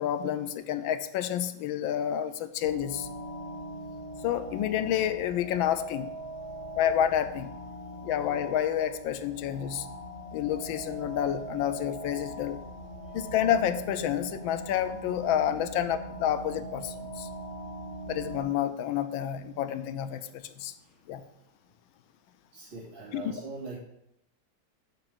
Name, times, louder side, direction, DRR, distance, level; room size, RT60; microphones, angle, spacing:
voice 1, 0.0-3.1 4.2-6.1 6.8-7.5 8.0-9.9 10.3-12.6 13.1-17.3 18.1-20.7 21.1-21.2 23.1-23.3, left 10 dB, 85° left, 11 dB, 1.4 m, -29 dB
sound 1, 2.6-18.4, right 1 dB, 30° left, 0.8 m, -41 dB
voice 2, 22.5-23.8, right 4 dB, 80° right, -9 dB, 4.2 m, -42 dB
10.0 x 4.0 x 7.3 m, 0.84 s
omnidirectional pair, 2.1 m